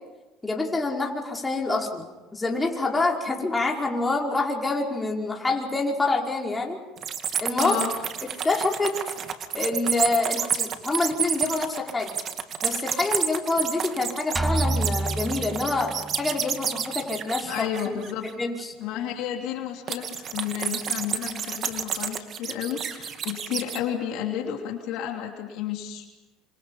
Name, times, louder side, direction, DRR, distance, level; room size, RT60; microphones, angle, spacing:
voice 1, 0.4-2.1 2.3-6.8 7.4-7.8 8.4-9.0 9.5-12.2 12.6-18.0 18.4-18.7, left 3 dB, 15° left, -1 dB, 5.2 m, -26 dB
sound 1, 7.0-18.3 19.9-23.8, right 8 dB, 45° right, 2.4 m, -30 dB
voice 2, 7.6-7.9 17.5-18.3 18.8-26.1, left 10 dB, 70° left, 2 dB, 3.1 m, -31 dB
sound 2, 14.4-16.2, right 2 dB, 15° right, 1.1 m, -27 dB
27.0 x 27.0 x 5.7 m, 1.2 s
supercardioid pair, 85°, 0 cm